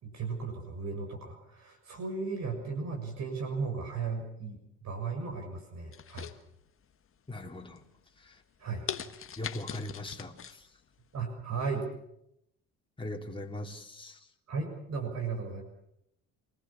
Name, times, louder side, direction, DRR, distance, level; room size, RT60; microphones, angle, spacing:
voice 1, 0.0-6.3 8.6-8.9 11.1-11.9 14.5-15.6, right 4 dB, 50° right, 6.6 m, -35 dB
sound 1, 5.9-6.9 7.4-7.8 8.3-8.4 8.9-10.6 10.9-11.0, left 8 dB, 40° left, 1.6 m, -40 dB
voice 2, 7.3-7.9 8.2-8.4 9.4-10.7 13.0-14.2, left 1 dB, 15° left, 3.2 m, -40 dB
27.0 x 19.0 x 7.2 m
supercardioid pair, 80°, 34 cm